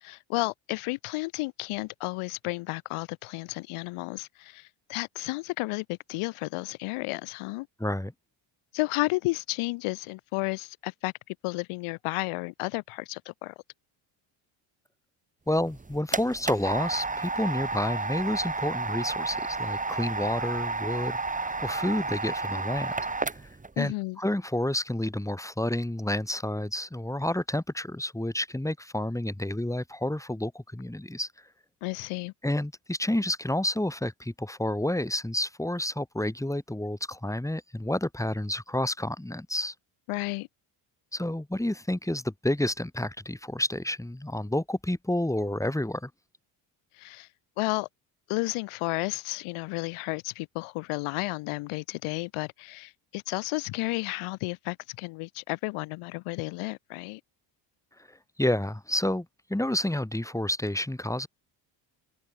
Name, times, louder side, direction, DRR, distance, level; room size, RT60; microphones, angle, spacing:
voice 1, 0.0-7.7 8.7-13.5 23.8-24.2 31.8-32.3 40.1-40.5 46.9-47.3 47.6-47.9 48.3-57.2, left 23 dB, 80° left, 1.9 m, -32 dB
voice 2, 7.8-8.1 15.5-22.9 23.2-23.4 23.8-31.3 32.4-39.7 41.1-46.1 58.1-61.3, left 1 dB, 5° left, 6.4 m, -30 dB
sound 1, 15.6-23.7, right 3 dB, 15° right, 1.8 m, -32 dB
open air
supercardioid pair, 80°, 49 cm